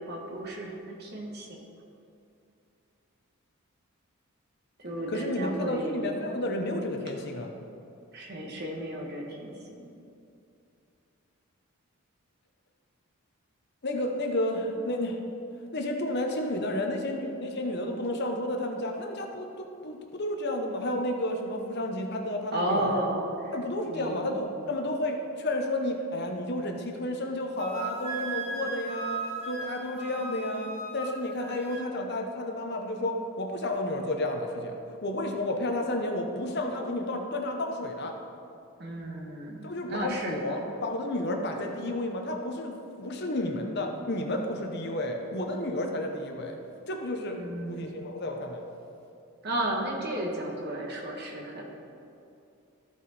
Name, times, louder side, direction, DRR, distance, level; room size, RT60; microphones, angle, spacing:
voice 1, 0.0-1.6 4.8-6.1 8.1-9.9 22.5-23.3 23.9-24.4 38.8-40.7 47.3-48.0 49.4-51.7, right 1 dB, 50° right, 0 dB, 1.3 m, -33 dB
voice 2, 5.1-7.5 13.8-15.2 15.7-23.0 23.5-38.1 39.6-46.5 46.9-47.4 47.7-48.6, left 1 dB, 50° left, 3 dB, 0.8 m, -31 dB
Wind instrument woodwind instrument, 27.6-31.9, right 3 dB, 30° right, 0.9 m, -37 dB
13.5 x 4.7 x 4.1 m, 2.6 s
head